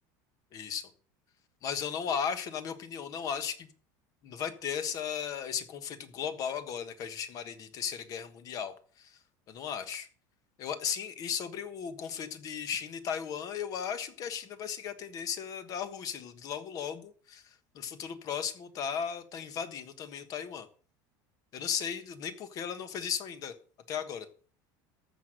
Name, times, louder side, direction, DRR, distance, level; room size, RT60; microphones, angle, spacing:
voice 1, 0.5-0.9 1.6-3.7 4.2-9.2 9.5-10.1 10.6-20.7 21.5-23.5 23.9-24.3, left 7 dB, 40° left, 11 dB, 1.4 m, -36 dB
14.0 x 6.3 x 6.5 m, 0.44 s
cardioid pair, 160°, 10 cm